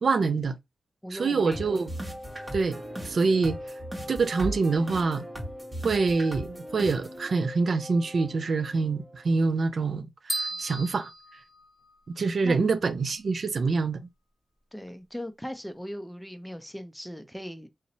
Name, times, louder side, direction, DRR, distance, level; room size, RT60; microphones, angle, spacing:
voice 1, 0.0-0.6 1.1-1.9 2.5-3.6 4.1-5.2 5.8-11.1 12.2-14.0, right 4 dB, 65° right, 0.3 m, -26 dB
voice 2, 1.0-1.6 10.5-10.6 12.4-12.7 14.7-17.7, equal, 5° left, 0.5 m, -38 dB
sound 1, 1.5-9.5, equal, 20° right, 1.2 m, -38 dB
sound 2, 10.3-12.2, right 1 dB, 25° left, 0.8 m, -35 dB
2.7 x 2.0 x 2.6 m
cardioid pair, 55°, 0 cm